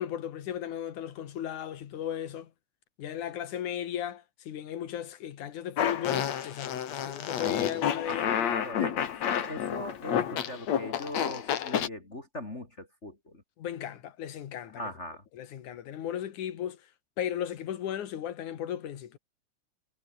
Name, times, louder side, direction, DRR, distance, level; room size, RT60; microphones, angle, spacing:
voice 1, 0.0-2.5 3.0-8.6 13.6-14.8 15.3-16.8 17.2-19.2, left 10 dB, 80° left, 3.2 m, -36 dB
Fart, 5.8-11.9, left 9 dB, 65° left, 3.0 m, -30 dB
voice 2, 8.1-9.1 9.4-13.4 14.7-15.2, left 1 dB, 20° left, 3.2 m, -40 dB
omnidirectional pair, 3.5 m